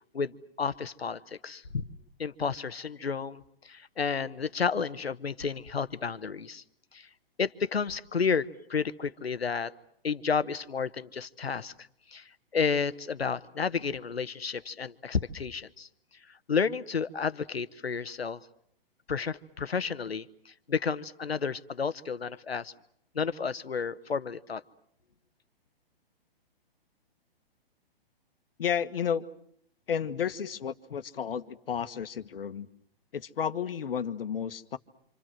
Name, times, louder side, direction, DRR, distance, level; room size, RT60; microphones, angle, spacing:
voice 1, 0.0-1.9 2.2-6.6 6.9-7.1 7.4-9.7 10.0-11.7 12.1-15.9 16.5-18.5 19.1-22.7 23.1-24.6, left 5 dB, 85° left, 14 dB, 1.2 m, -31 dB
voice 2, 28.6-29.3 29.9-32.7 33.1-34.8, left 8 dB, 70° left, 11 dB, 1.5 m, -32 dB
27.5 x 27.0 x 7.5 m, 0.68 s
figure-of-eight pair, 125°, 30 cm